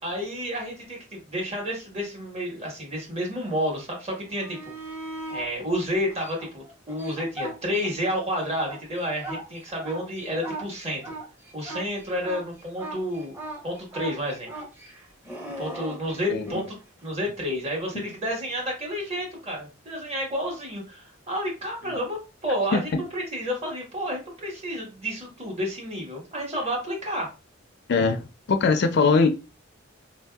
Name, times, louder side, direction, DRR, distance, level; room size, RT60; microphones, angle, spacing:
voice 1, 0.0-4.6 5.3-11.1 11.5-13.3 13.6-14.5 14.9-15.0 15.6-27.3, equal, 30° right, 1.3 m, -30 dB
sound 1, 4.2-5.5 6.1-8.2 8.5-16.7 19.5-19.6, right 1 dB, 10° right, 0.7 m, -38 dB
voice 2, 27.9-29.3, left 4 dB, 55° left, 0.4 m, -22 dB
3.7 x 2.7 x 2.2 m
head